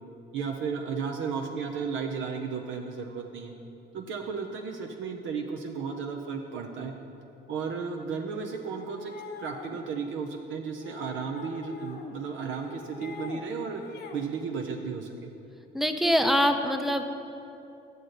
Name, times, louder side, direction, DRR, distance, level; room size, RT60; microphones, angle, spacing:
voice 1, 0.3-3.5 3.9-6.9 7.5-9.1 9.4-13.8 14.1-15.3, right 5 dB, 75° right, 3 dB, 0.6 m, -34 dB
sound 1, 8.8-9.8 10.8-12.2 12.5-13.4 13.7-14.3, left 4 dB, 55° left, 0.8 m, -44 dB
voice 2, 15.7-17.0, equal, ahead, 6 dB, 0.5 m, -24 dB
9.2 x 6.5 x 3.9 m, 2.8 s
cardioid pair, 90°, 20 cm